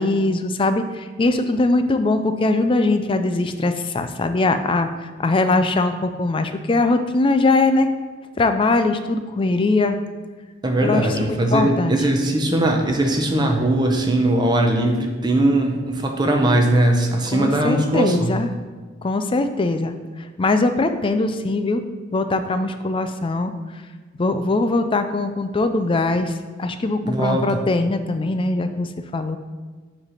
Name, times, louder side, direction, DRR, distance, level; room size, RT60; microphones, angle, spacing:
voice 1, 0.0-4.9 5.2-7.9 8.4-10.0 10.8-12.0 17.3-18.5 19.0-19.9 20.4-21.8 22.1-23.5 24.2-29.4, left 2 dB, 25° left, 9 dB, 0.4 m, -21 dB
voice 2, 10.6-18.3 27.0-27.6, right 1 dB, 20° right, 2 dB, 0.7 m, -20 dB
7.3 x 3.3 x 5.6 m, 1.4 s
head